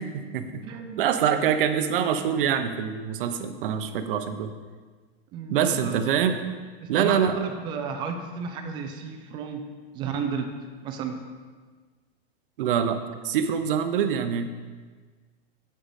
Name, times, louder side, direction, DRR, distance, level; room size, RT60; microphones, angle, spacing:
voice 1, 0.0-0.6 1.0-4.5 5.5-6.4 6.9-7.4 12.6-14.5, right 8 dB, 60° right, 9 dB, 0.8 m, -25 dB
voice 2, 0.6-1.1 5.3-6.0 7.0-9.6 9.9-10.5 10.8-11.2, right 5 dB, 15° right, 6 dB, 0.4 m, -32 dB
8.0 x 7.7 x 4.2 m, 1.5 s
supercardioid pair, 160°, 31 cm